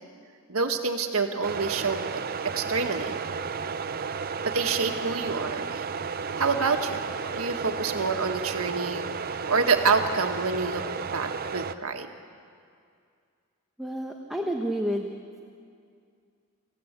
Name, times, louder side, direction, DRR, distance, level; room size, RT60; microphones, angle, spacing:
voice 1, 0.5-3.2 4.4-5.8 6.4-9.1 9.5-10.9 11.1-12.1, right 4 dB, 90° right, 5 dB, 1.7 m, -27 dB
sound 1, 1.4-11.7, right 5 dB, 45° right, 0.6 m, -33 dB
voice 2, 13.8-15.1, equal, ahead, 0 dB, 1.2 m, -29 dB
27.0 x 15.5 x 8.3 m, 2.3 s
head